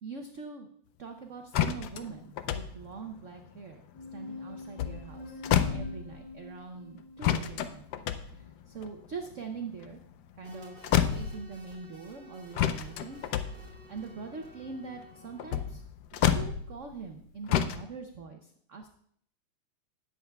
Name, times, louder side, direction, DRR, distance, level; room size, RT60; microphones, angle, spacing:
voice 1, 0.0-0.7 1.0-3.8 4.1-5.4 5.7-10.0 10.4-13.2 13.9-15.8 16.1-18.9, right 5 dB, 70° right, 4 dB, 0.7 m, -43 dB
sound 1, 1.5-4.2 4.6-6.4 7.2-10.5 10.8-11.9 12.5-17.2 17.5-17.8, left 10 dB, 75° left, 0.9 m, -30 dB
sound 2, 3.9-8.9, left 3 dB, 60° left, 2.2 m, -46 dB
sound 3, 10.4-15.8, right 2 dB, 45° right, 3.6 m, -54 dB
18.5 x 7.9 x 2.3 m, 0.64 s
omnidirectional pair, 2.3 m